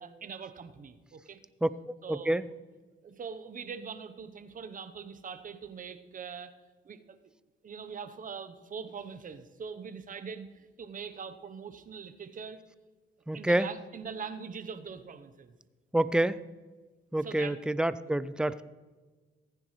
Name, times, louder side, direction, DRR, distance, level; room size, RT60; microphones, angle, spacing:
voice 1, 0.0-1.4 2.0-2.4 3.0-6.5 6.8-7.2 7.6-12.6 13.3-15.6 17.2-17.6 18.5-18.6, right 6 dB, 45° right, 10 dB, 0.9 m, -42 dB
voice 2, 1.6-2.5 13.3-13.7 15.9-16.4 17.1-18.6, right 1 dB, 5° right, 16 dB, 0.4 m, -28 dB
15.0 x 9.9 x 3.2 m, 1.3 s
cardioid pair, 90°, 20 cm